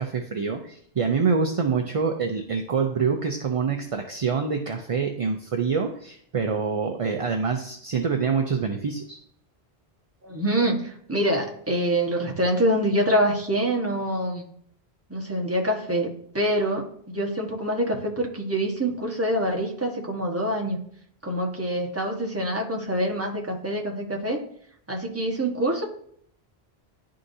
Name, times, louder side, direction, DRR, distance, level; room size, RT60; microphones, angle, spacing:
voice 1, 0.0-9.2, right 5 dB, 45° right, 4 dB, 0.5 m, -26 dB
voice 2, 10.2-14.4 15.1-16.1 16.3-20.8 21.2-24.4 24.9-25.8, right 1 dB, 15° right, 0 dB, 1.0 m, -25 dB
11.0 x 3.8 x 2.7 m, 0.65 s
omnidirectional pair, 1.1 m